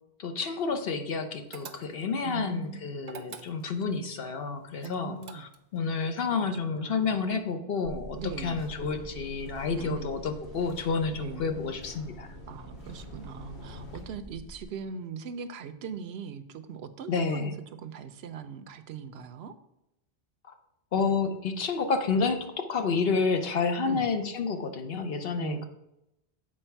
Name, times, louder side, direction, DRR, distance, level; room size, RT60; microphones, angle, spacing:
voice 1, 0.2-12.3 17.1-17.5 20.9-25.6, left 4 dB, 65° left, 7 dB, 1.0 m, -30 dB
sound 1, 1.5-2.2 3.0-3.9 4.8-5.8, right 6 dB, 50° right, 0.6 m, -45 dB
voice 2, 2.2-3.0 4.8-5.4 6.7-7.1 8.2-8.6 9.8-10.1 11.1-11.5 12.5-17.5 17.8-19.5 23.9-24.1 25.4-25.6, right 6 dB, 80° right, 10 dB, 0.8 m, -40 dB
sound 2, 7.8-14.6, right 1 dB, 15° left, 0.4 m, -47 dB
sound 3, 8.2-14.0, left 2 dB, 85° left, 2.1 m, -48 dB
7.6 x 4.7 x 4.4 m, 0.86 s
omnidirectional pair, 1.1 m